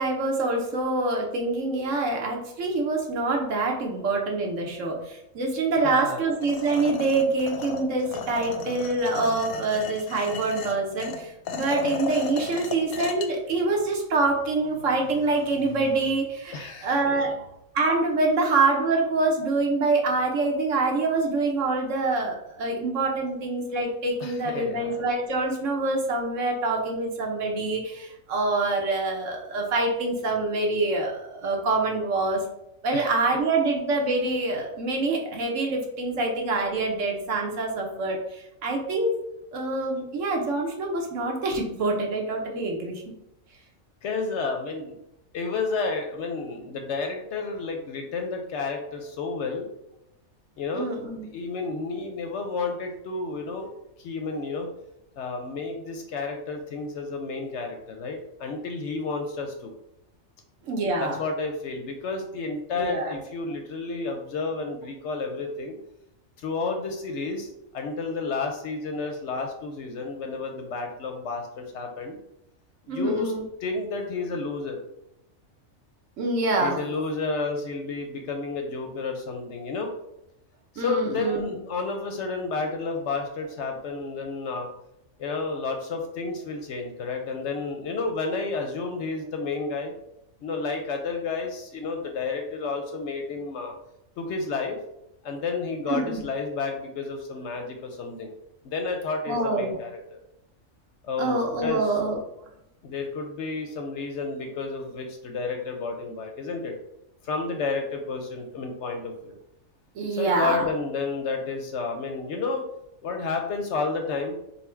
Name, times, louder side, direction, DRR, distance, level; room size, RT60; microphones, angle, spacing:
voice 1, 0.0-17.3 17.7-32.4 32.8-39.1 39.5-43.0 50.7-51.3 60.6-61.2 62.7-63.2 72.9-73.4 76.2-76.8 80.8-81.5 95.9-96.2 99.3-99.8 101.2-102.2 109.9-110.6, right 3 dB, 65° right, 0 dB, 1.1 m, -26 dB
voice 2, 5.8-6.2 16.5-17.3 24.2-25.0 32.9-33.4 44.0-45.0 45.3-49.6 50.6-50.9 51.3-53.7 54.0-54.7 55.2-59.7 61.0-65.8 66.4-72.2 72.9-73.3 73.6-74.8 76.6-79.9 80.7-84.7 85.2-89.9 90.4-93.7 94.2-94.8 95.2-98.3 98.6-100.2 101.0-102.0 102.8-106.8 107.2-109.3 110.1-112.6 113.0-114.4, left 4 dB, 65° left, 3 dB, 0.8 m, -31 dB
sound 1, 6.4-13.3, left 6 dB, 90° left, 1.0 m, -35 dB
4.0 x 2.1 x 4.3 m, 0.82 s
omnidirectional pair, 1.4 m